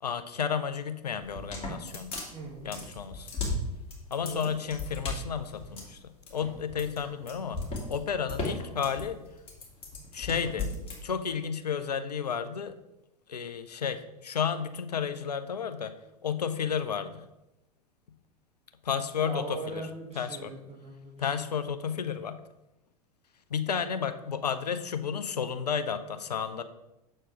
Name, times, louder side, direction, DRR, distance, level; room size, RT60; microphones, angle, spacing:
voice 1, 0.0-2.2 2.6-3.3 4.1-7.6 7.9-9.2 10.1-10.7 11.0-12.7 13.3-15.9 16.2-17.2 18.8-19.8 20.1-20.5 21.2-22.4 23.5-26.6, left 7 dB, 85° left, 11 dB, 0.5 m, -32 dB
sound 1, 1.2-11.0, left 2 dB, 30° left, 2.5 m, -36 dB
voice 2, 2.3-2.7 4.2-4.5 19.2-21.4 21.8-22.0, right 3 dB, 30° right, -2 dB, 2.6 m, -40 dB
7.3 x 4.4 x 4.7 m, 0.92 s
figure-of-eight pair, 85°, 20 cm